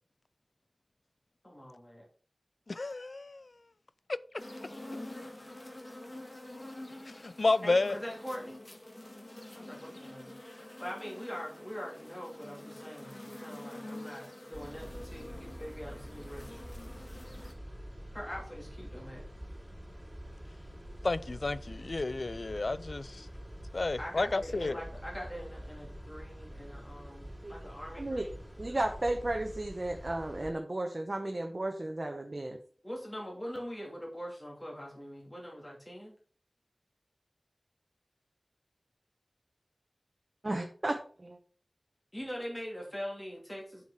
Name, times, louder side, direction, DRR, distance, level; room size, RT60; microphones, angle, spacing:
voice 1, 1.4-2.1 7.6-8.7 9.5-16.7 18.1-19.2 24.0-28.4 32.8-36.1 42.1-43.9, equal, 20° left, 2.6 m, -43 dB
voice 2, 2.7-3.5 7.2-7.9 21.0-23.3 23.7-24.8, left 3 dB, 70° left, 0.4 m, -31 dB
sound 1, 4.4-17.5, left 1 dB, 40° left, 1.8 m, -47 dB
sound 2, 14.5-30.5, equal, 5° right, 3.7 m, -46 dB
voice 3, 28.6-32.6 40.4-41.4, right 1 dB, 45° right, 1.0 m, -34 dB
7.1 x 6.3 x 4.8 m
wide cardioid pair, 65°, 0 cm